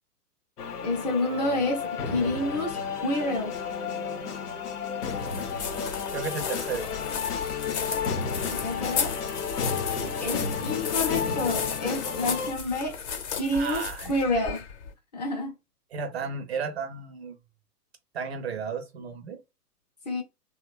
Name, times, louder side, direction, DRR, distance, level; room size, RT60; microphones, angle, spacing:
Epic chorus-song, 0.6-12.5, left 6 dB, 75° left, 0.7 m, -32 dB
voice 1, 0.8-3.5 8.4-9.1 10.2-13.0 13.4-14.6 15.1-15.5 20.1-20.2, left 2 dB, 30° left, 0.4 m, -29 dB
sound 1, 5.0-14.9, left 7 dB, 45° left, 0.8 m, -34 dB
voice 2, 6.1-6.9 9.9-10.1 13.5-14.1 15.9-17.3 18.1-19.4, right 5 dB, 45° right, 0.4 m, -33 dB
2.9 x 2.2 x 2.3 m
figure-of-eight pair, 120°, 48 cm